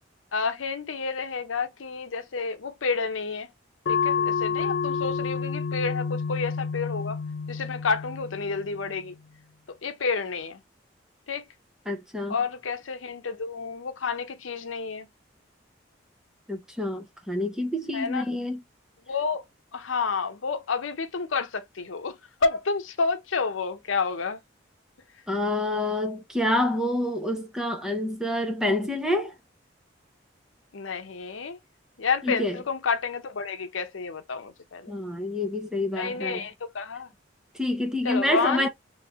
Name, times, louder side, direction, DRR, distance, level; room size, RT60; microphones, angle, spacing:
voice 1, 0.3-3.5 3.9-7.2 7.5-9.1 9.7-10.6 11.3-11.5 12.3-15.1 17.9-18.3 19.1-19.5 19.7-24.4 30.7-31.6 32.0-34.9 35.9-37.1 38.0-38.7, left 4 dB, 90° left, 0.7 m, -30 dB
sound 1, 3.9-9.0, left 5 dB, 60° left, 0.4 m, -29 dB
voice 2, 11.9-12.3 16.5-18.6 25.3-29.3 32.2-32.6 34.9-36.4 37.5-38.7, left 1 dB, 5° right, 0.8 m, -27 dB
3.2 x 2.8 x 3.4 m
head